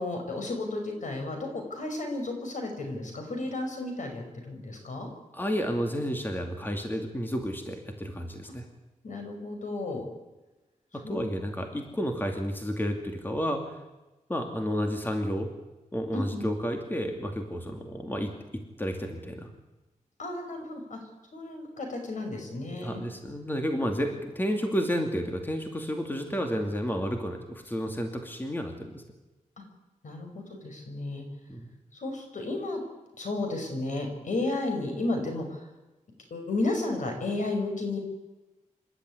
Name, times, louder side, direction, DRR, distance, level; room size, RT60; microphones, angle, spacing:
voice 1, 0.0-5.1 9.0-10.1 10.9-11.3 16.1-16.4 20.2-21.0 21.3-23.0 30.0-31.3 31.9-32.8 33.2-35.7 36.3-38.0, left 2 dB, 70° left, 4 dB, 5.6 m, -33 dB
voice 2, 5.3-8.7 10.9-13.8 14.3-15.5 15.9-18.3 18.8-19.5 22.8-29.0 31.5-31.7, equal, 15° left, 4 dB, 2.5 m, -31 dB
26.5 x 12.0 x 9.8 m, 1.1 s
wide cardioid pair, 115°, 13 cm